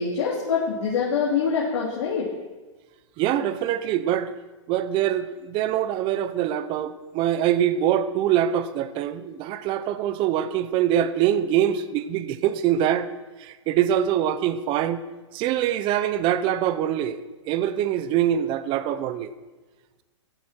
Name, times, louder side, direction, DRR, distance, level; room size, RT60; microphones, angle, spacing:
voice 1, 0.0-2.3, left 6 dB, 60° left, -6 dB, 3.6 m, -25 dB
voice 2, 3.2-4.3 4.7-13.1 13.4-15.0 15.3-19.3, right 10 dB, 30° right, 13 dB, 0.9 m, -24 dB
16.0 x 12.5 x 4.6 m, 1.3 s
hypercardioid pair, 140°, 16 cm